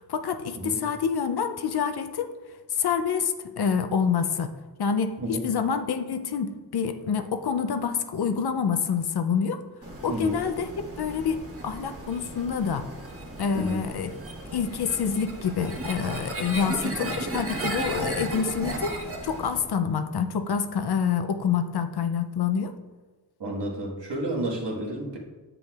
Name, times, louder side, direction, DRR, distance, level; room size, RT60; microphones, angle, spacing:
voice 1, 0.0-2.3 2.7-4.5 4.8-9.6 10.0-10.7 11.0-11.4 11.6-12.9 13.4-14.1 14.5-18.9 19.2-22.7, left 6 dB, 65° left, 9 dB, 0.6 m, -27 dB
sound 1, 9.8-19.7, right 1 dB, 35° right, 1.3 m, -35 dB
voice 2, 10.1-10.4 13.5-13.8 23.4-25.2, right 1 dB, 75° right, -2 dB, 1.6 m, -31 dB
7.8 x 6.8 x 2.4 m, 1.3 s
cardioid pair, 60°, 42 cm